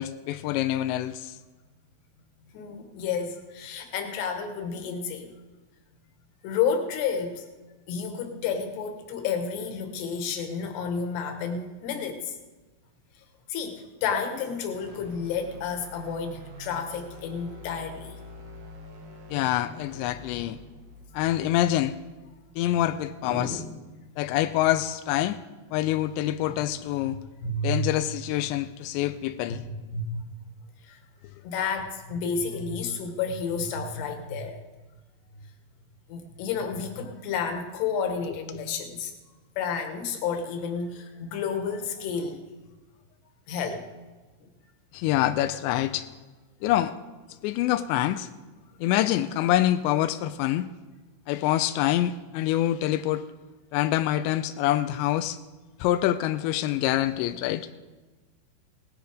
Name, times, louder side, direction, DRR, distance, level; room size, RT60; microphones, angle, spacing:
voice 1, 0.0-1.4 19.3-20.6 21.1-22.0 22.6-23.6 24.2-25.4 25.7-27.2 27.6-29.6 44.9-46.1 46.6-46.9 47.4-48.3 48.8-50.7 51.3-53.2 53.7-55.4 55.8-57.7, left 13 dB, 85° left, 10 dB, 2.6 m, -26 dB
voice 2, 2.5-5.3 6.4-7.5 7.9-12.4 13.5-18.2 23.2-23.7 26.4-26.6 27.4-27.9 29.5-30.2 30.8-31.0 31.4-34.6 35.4-35.5 36.1-39.1 39.6-42.4 43.5-44.0 44.4-44.5, left 5 dB, 70° left, 5 dB, 3.3 m, -31 dB
sound 1, 14.7-22.9, left 1 dB, 65° right, 1.8 m, -46 dB
18.0 x 9.6 x 5.1 m, 1.2 s
omnidirectional pair, 5.6 m